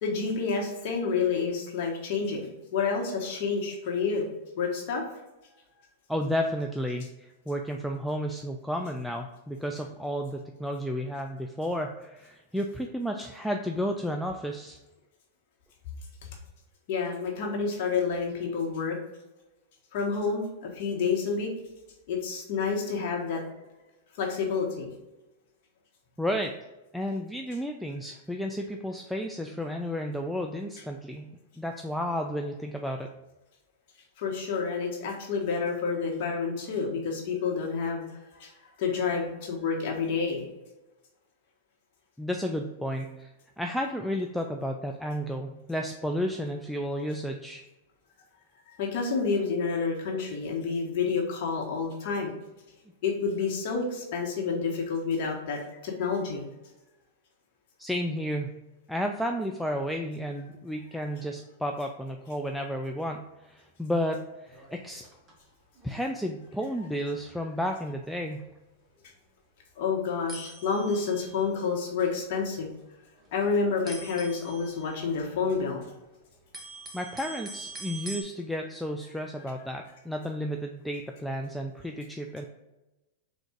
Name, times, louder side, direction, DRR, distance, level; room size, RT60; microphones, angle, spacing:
voice 1, 0.0-4.3 4.6-5.0 16.9-19.0 19.9-21.5 22.1-23.4 24.2-24.9 34.2-38.0 38.3-38.5 38.8-40.4 48.8-52.3 53.0-56.4 69.8-72.7 73.3-75.8, left 5 dB, 55° left, 0 dB, 1.2 m, -29 dB
voice 2, 6.1-14.8 26.2-26.6 26.9-31.3 31.6-33.1 42.2-43.3 43.6-47.6 57.8-58.6 58.9-65.0 65.8-68.5 76.9-82.5, equal, ahead, 2 dB, 0.3 m, -32 dB
sound 1, 64.5-65.4 65.7-66.0 66.5-66.7 67.1-67.2 67.6-67.7 67.9-68.1 69.0-69.1 69.7-69.8 70.3-71.6 72.4-72.9 73.1-73.4 73.9-75.9 76.2-78.2, right 3 dB, 25° right, 1.0 m, -44 dB
3.7 x 2.5 x 4.5 m, 1.0 s
hypercardioid pair, 105°, 0 cm